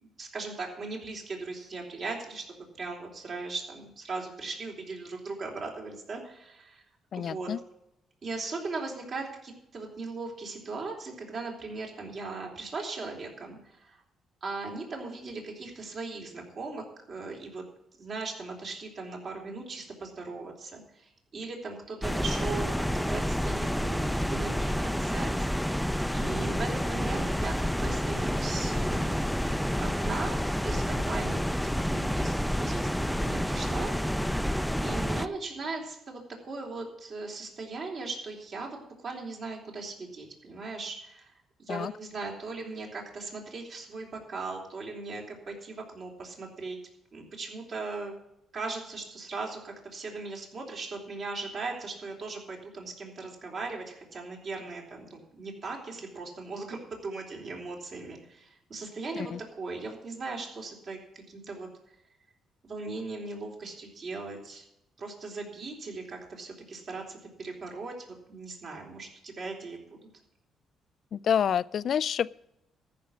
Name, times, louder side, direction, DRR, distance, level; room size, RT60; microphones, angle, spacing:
voice 1, 0.0-6.8 7.1-7.5 8.2-14.0 14.4-17.6 18.0-25.3 26.1-29.2 29.8-34.3 34.8-41.3 41.6-46.8 47.1-48.1 48.5-61.7 62.6-64.7 65.0-70.0, right 3 dB, 55° right, 0 dB, 3.8 m, -38 dB
voice 2, 7.1-7.6 41.7-41.9 59.2-59.4 71.1-72.3, left 8 dB, 60° left, 20 dB, 0.4 m, -28 dB
sound 1, 22.0-35.3, equal, ahead, 0.6 m, -29 dB
14.0 x 6.0 x 8.3 m, 0.83 s
supercardioid pair, 60°, 0 cm